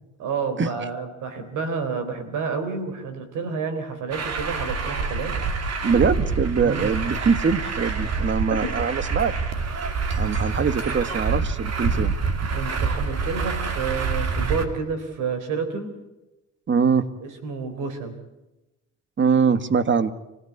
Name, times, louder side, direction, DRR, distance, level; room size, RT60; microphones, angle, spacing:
voice 1, 0.2-5.4 6.6-6.9 8.5-8.8 12.5-15.9 17.2-18.1, right 5 dB, 85° right, 9 dB, 3.7 m, -29 dB
Truck, 4.1-14.7, right 4 dB, 55° right, 2.8 m, -26 dB
voice 2, 5.8-9.3 10.2-12.2 16.7-17.1 19.2-20.1, right 5 dB, 40° right, 13 dB, 1.5 m, -22 dB
26.0 x 16.5 x 8.2 m, 0.98 s
cardioid pair, 90°, 30 cm